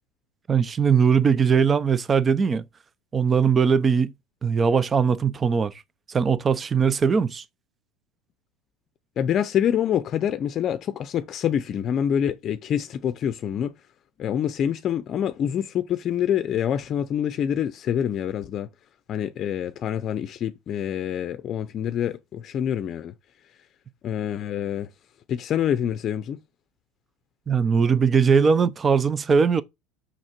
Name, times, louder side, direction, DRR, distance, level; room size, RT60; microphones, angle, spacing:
voice 1, 0.5-2.6 3.1-4.1 4.4-5.7 6.1-7.4 27.5-29.6, right 6 dB, 20° right, 0.6 m, -20 dB
voice 2, 9.2-13.7 14.2-18.7 19.1-23.1 24.0-24.9 25.3-26.4, left 9 dB, 35° left, 0.7 m, -26 dB
6.5 x 6.3 x 4.5 m
supercardioid pair, 145°, 0 cm